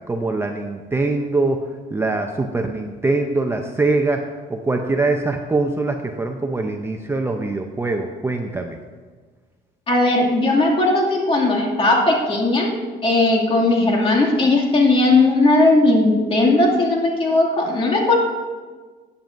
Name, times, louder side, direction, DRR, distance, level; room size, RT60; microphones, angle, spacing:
voice 1, 0.1-4.2 4.5-8.8, right 3 dB, 15° right, 4 dB, 0.6 m, -23 dB
voice 2, 9.9-12.7 13.0-18.2, left 2 dB, 30° left, -1 dB, 2.4 m, -17 dB
15.0 x 9.1 x 2.6 m, 1.4 s
cardioid pair, 110°, 17 cm